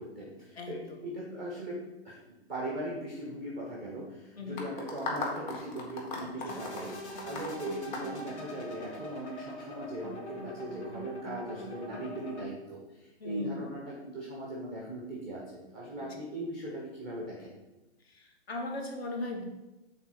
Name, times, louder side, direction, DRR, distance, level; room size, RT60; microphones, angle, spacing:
voice 1, 0.0-2.2 2.5-17.5, right 1 dB, ahead, -3 dB, 0.4 m, -39 dB
voice 2, 0.6-1.1 4.4-4.6 6.2-6.6 13.2-13.7 16.0-16.2 18.0-19.4, left 2 dB, 65° left, 2 dB, 1.9 m, -39 dB
sound 1, 4.6-9.0, left 3 dB, 45° left, 1.7 m, -37 dB
sound 2, 6.5-12.4, equal, 85° left, 1.9 m, -43 dB
7.2 x 4.1 x 5.9 m, 1.0 s
hypercardioid pair, 160°, 33 cm